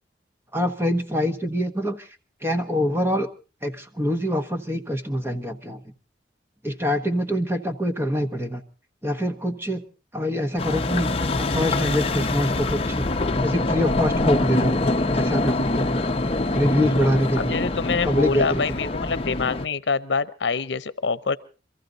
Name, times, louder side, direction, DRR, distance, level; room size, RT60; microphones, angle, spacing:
voice 1, 0.5-2.1 2.4-3.3 3.6-5.8 6.6-8.6 9.0-9.8 10.1-11.1 11.4-13.1 13.4-14.8 15.1-16.0 16.5-17.6 18.1-18.6, equal, 15° right, 6 dB, 1.2 m, -25 dB
sound 1, 10.6-19.7, left 2 dB, 35° left, 0.8 m, -24 dB
voice 2, 17.4-21.4, left 4 dB, 85° left, 15 dB, 0.7 m, -25 dB
24.5 x 14.5 x 3.9 m, 0.35 s
head